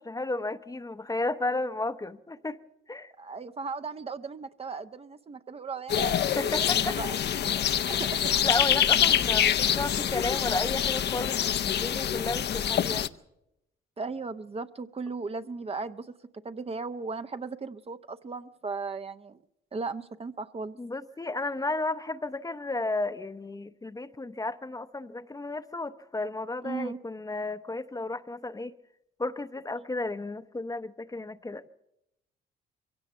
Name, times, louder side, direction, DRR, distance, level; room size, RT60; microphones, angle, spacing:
voice 1, 0.0-2.6 2.9-3.1 6.3-7.0 7.9-8.0 8.4-13.1 20.8-28.7 29.2-31.7, left 2 dB, 20° left, 0.7 m, -33 dB
voice 2, 3.2-6.4 6.7-7.2 7.7-8.3 14.0-16.2 16.4-19.4 19.7-20.8 26.6-27.0, right 4 dB, 30° right, 0.7 m, -37 dB
sound 1, 5.9-13.1, left 9 dB, 60° left, 0.7 m, -26 dB
23.0 x 16.5 x 7.0 m
cardioid pair, 90°, 20 cm